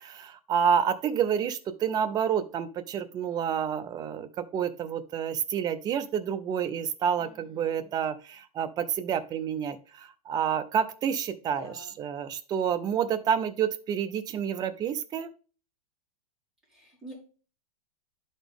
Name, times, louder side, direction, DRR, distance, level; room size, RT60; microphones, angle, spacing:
voice 1, 0.0-15.3, right 8 dB, 20° right, 10 dB, 0.6 m, -29 dB
voice 2, 7.2-8.0 11.6-12.0 16.7-17.1, equal, ahead, -8 dB, 4.3 m, -48 dB
11.0 x 4.1 x 3.5 m, 0.37 s
supercardioid pair, 145°, 19 cm